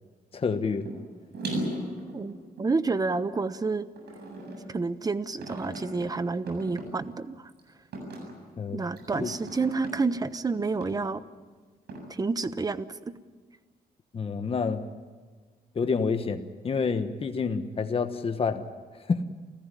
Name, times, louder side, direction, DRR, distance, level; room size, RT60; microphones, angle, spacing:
voice 1, 0.3-0.9 8.6-8.8 9.2-9.3 14.1-14.8 15.7-18.6 19.1-19.2, left 5 dB, 35° left, 8 dB, 1.3 m, -28 dB
sound 1, 0.8-1.0 1.3-3.3 4.0-4.7 5.4-6.1 6.5-6.9 7.5-7.6 7.9-8.3 9.0-9.9 10.8-10.9 11.9-12.0, right 1 dB, 85° right, 7.9 m, -36 dB
voice 2, 2.1-3.9 4.7-7.5 8.7-11.2 12.1-13.1, right 4 dB, 25° right, 13 dB, 1.0 m, -29 dB
29.0 x 15.5 x 10.0 m, 1.5 s
cardioid pair, 130°, 16 cm